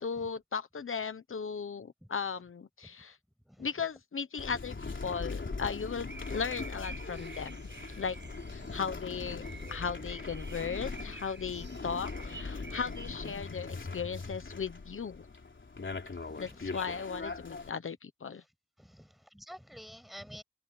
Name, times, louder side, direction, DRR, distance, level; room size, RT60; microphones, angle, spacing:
voice 1, 0.0-3.2 3.6-7.6 8.0-8.2 8.5-15.3 16.4-18.4, left 6 dB, 90° left, 1.1 m, -37 dB
sound 1, 4.4-17.7, left 4 dB, 65° left, 3.8 m, -41 dB
sound 2, 4.9-13.4, right 3 dB, 60° right, 7.8 m, -50 dB
voice 2, 16.4-16.9 18.8-20.4, equal, ahead, 7.4 m, -49 dB
wide cardioid pair, 55°, 21 cm